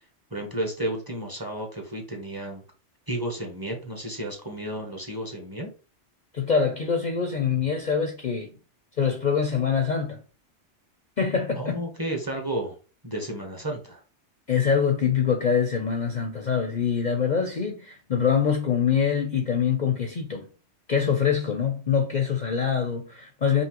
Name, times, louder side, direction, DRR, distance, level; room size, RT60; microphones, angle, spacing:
voice 1, 0.3-2.6 3.1-5.7 11.6-12.7 13.0-14.0, right 1 dB, 20° right, 0.8 m, -32 dB
voice 2, 6.3-8.5 9.0-10.2 11.2-11.8 14.5-20.5 20.9-23.6, left 7 dB, 50° left, 0.6 m, -24 dB
5.4 x 2.7 x 3.0 m
omnidirectional pair, 1.2 m